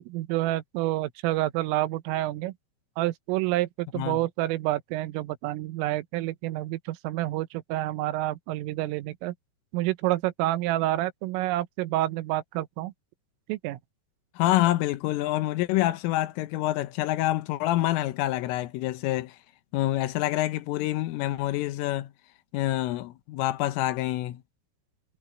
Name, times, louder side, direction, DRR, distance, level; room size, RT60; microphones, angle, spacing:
voice 1, 0.0-2.5 3.0-9.4 9.7-12.9 13.5-13.8, right 16 dB, 85° right, 3.6 m, -28 dB
voice 2, 14.4-19.4 19.7-22.1 22.5-24.4, left 15 dB, 85° left, 3.6 m, -27 dB
omnidirectional pair, 5.8 m